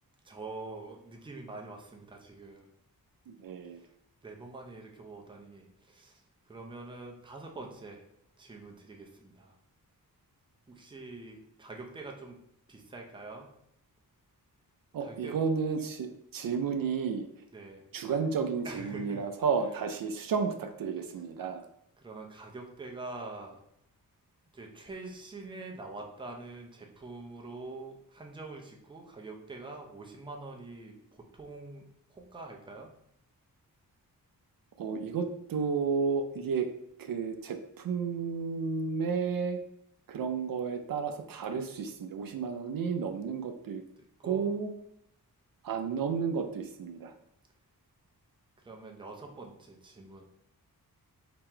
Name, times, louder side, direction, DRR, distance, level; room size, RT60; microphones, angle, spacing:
voice 1, 0.2-2.7 3.7-3.9 4.2-8.0 8.4-9.5 10.7-12.4 12.7-13.6 15.0-15.4 17.5-17.8 18.6-19.3 22.0-23.6 24.5-32.9 44.2-44.5 48.6-50.2, right 3 dB, 15° right, 0 dB, 0.6 m, -45 dB
voice 2, 3.3-3.8 14.9-17.3 17.9-21.6 34.8-36.7 37.0-39.6 40.1-43.8 44.2-44.7 45.6-47.1, right 5 dB, 65° right, 6 dB, 0.5 m, -32 dB
3.7 x 2.9 x 4.3 m, 0.75 s
wide cardioid pair, 170°, 37 cm